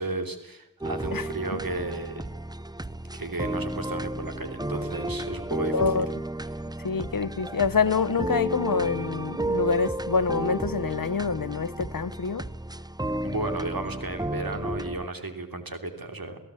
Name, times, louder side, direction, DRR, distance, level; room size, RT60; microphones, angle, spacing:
voice 1, 0.0-2.3 2.9-5.7 13.2-16.4, right 2 dB, 90° right, 3.2 m, -34 dB
sound 1, 0.8-15.1, right 1 dB, 10° right, 0.8 m, -33 dB
voice 2, 5.7-6.1 6.8-12.5, left 5 dB, 75° left, 1.0 m, -26 dB
29.0 x 16.5 x 8.4 m
wide cardioid pair, 45°, 34 cm